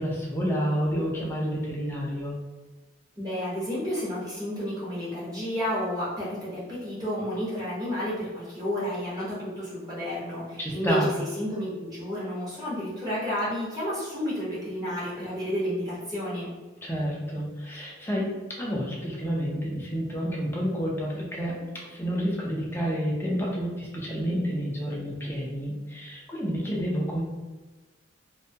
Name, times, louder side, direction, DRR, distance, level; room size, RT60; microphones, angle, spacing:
voice 1, 0.0-2.3 10.6-11.1 16.8-18.3 18.6-27.2, equal, 10° left, -4 dB, 0.5 m, -29 dB
voice 2, 3.2-16.5, equal, 20° right, -8 dB, 0.8 m, -31 dB
2.7 x 2.2 x 2.7 m, 1.2 s
head